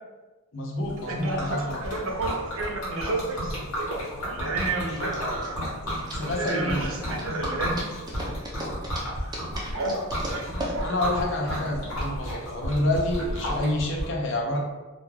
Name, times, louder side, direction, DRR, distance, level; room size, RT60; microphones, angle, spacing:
voice 1, 0.5-1.8 6.1-7.0 10.8-14.6, left 1 dB, 55° left, -1 dB, 0.5 m, -28 dB
Liquid, 0.9-14.0, equal, 85° left, 1.1 m, -32 dB
voice 2, 1.1-3.9 4.3-5.6 6.2-7.8 9.2-10.0 10.3-10.9 11.5-11.7, right 2 dB, 70° right, 0 dB, 0.6 m, -31 dB
sound 1, 3.3-12.1, right 1 dB, 20° right, 0.4 m, -39 dB
2.3 x 2.2 x 3.1 m, 1.2 s
head